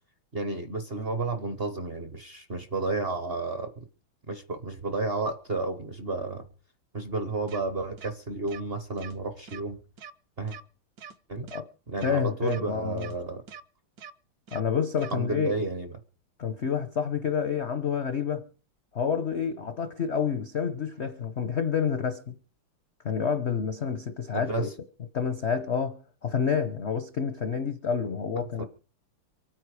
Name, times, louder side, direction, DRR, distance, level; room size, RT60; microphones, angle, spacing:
voice 1, 0.3-3.8 4.3-6.5 6.9-9.8 10.4-10.6 11.3-11.5 11.9-13.4 15.1-15.9 24.3-24.7 28.6-28.7, right 3 dB, 40° right, 0.9 m, -32 dB
sound 1, 7.5-7.6 8.0-8.1 8.5-8.6 9.0-9.1 9.5-9.6 10.0-10.1 10.5-10.6 11.0-11.1 11.5-11.6 12.0-12.1 12.5-12.6 13.0-13.1 13.5-13.6 14.0-14.1 14.5-14.6 15.0-15.1, right 7 dB, 60° right, 1.1 m, -44 dB
voice 2, 12.0-13.1 14.5-15.5 16.4-18.4 18.9-22.4 23.0-24.7 25.1-28.6, left 7 dB, 60° left, 0.7 m, -28 dB
24.5 x 9.2 x 4.8 m
omnidirectional pair, 2.4 m